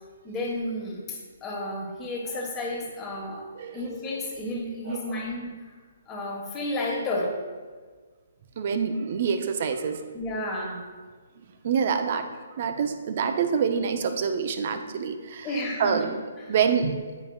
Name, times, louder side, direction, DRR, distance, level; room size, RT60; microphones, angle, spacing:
voice 1, 0.2-5.6 6.1-7.3 10.1-10.8 15.4-16.4, left 1 dB, 20° left, -2 dB, 1.3 m, -32 dB
voice 2, 4.9-5.3 8.6-10.0 11.6-12.3 12.6-15.5 15.8-16.2 16.5-17.0, right 6 dB, 50° right, 7 dB, 0.5 m, -26 dB
9.1 x 5.1 x 2.3 m, 1.5 s
figure-of-eight pair, 135°, 0 cm